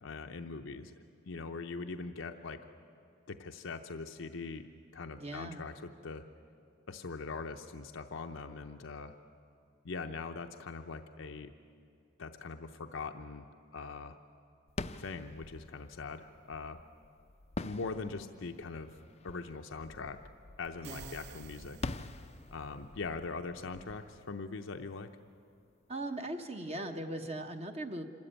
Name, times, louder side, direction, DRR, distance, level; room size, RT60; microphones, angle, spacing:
voice 1, 0.0-0.9 1.2-2.6 3.3-5.7 6.0-6.2 6.9-9.1 9.8-11.5 12.2-14.2 15.0-16.8 17.6-19.0 19.2-20.2 20.6-21.8 22.5-25.1, left 4 dB, 75° left, 5 dB, 0.7 m, -42 dB
voice 2, 5.2-5.6 20.8-21.2 25.9-28.0, right 1 dB, 35° right, 5 dB, 1.1 m, -39 dB
sound 1, 14.7-25.3, left 3 dB, 30° left, 0.5 m, -46 dB
sound 2, 20.6-22.7, right 10 dB, 55° right, 0.4 m, -53 dB
26.5 x 13.0 x 8.9 m, 2.6 s
head